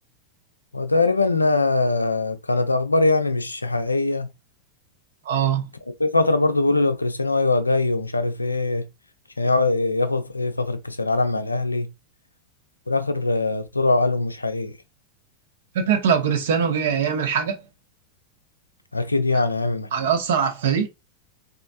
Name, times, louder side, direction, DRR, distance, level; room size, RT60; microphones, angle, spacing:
voice 1, 0.7-4.3 6.0-8.8 9.4-11.9 12.9-14.7 18.9-19.9, left 3 dB, 80° left, 0.4 m, -22 dB
voice 2, 5.3-5.7 15.7-17.6 19.3-19.4 19.9-20.9, right 7 dB, 60° right, 0.8 m, -22 dB
4.2 x 2.4 x 2.4 m
figure-of-eight pair, 90°, 0 cm